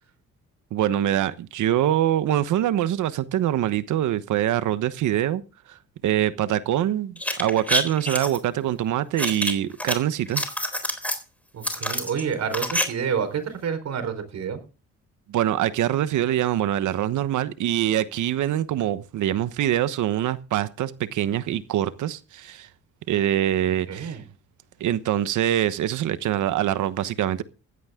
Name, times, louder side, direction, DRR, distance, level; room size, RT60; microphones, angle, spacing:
voice 1, 0.7-5.4 5.7-5.8 6.0-10.4 15.3-22.7 23.1-24.2 24.8-27.4, right 12 dB, 80° right, 1.2 m, -24 dB
sound 1, 7.2-8.4 9.2-9.9 10.3-11.2 11.6-12.8 13.1-13.2, left 1 dB, 5° left, 3.8 m, -27 dB
voice 2, 11.5-14.6 23.9-24.2, right 7 dB, 60° right, 4.4 m, -28 dB
16.0 x 12.0 x 3.8 m
cardioid pair, 90°, 30 cm